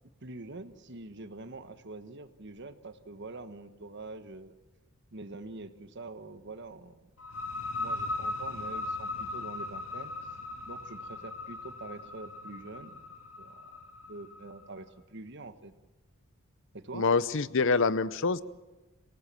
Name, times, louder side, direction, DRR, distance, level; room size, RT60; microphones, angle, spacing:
voice 1, 0.2-4.5 5.1-7.1 7.8-10.1 10.6-13.0 13.4-13.8 14.1-15.7 16.7-17.1, right 2 dB, 55° right, 10 dB, 1.3 m, -45 dB
sound 1, 7.2-14.7, left 2 dB, 90° left, 2.1 m, -38 dB
voice 2, 16.9-18.4, left 4 dB, 60° left, 16 dB, 0.7 m, -26 dB
27.0 x 18.0 x 7.6 m, 1.1 s
head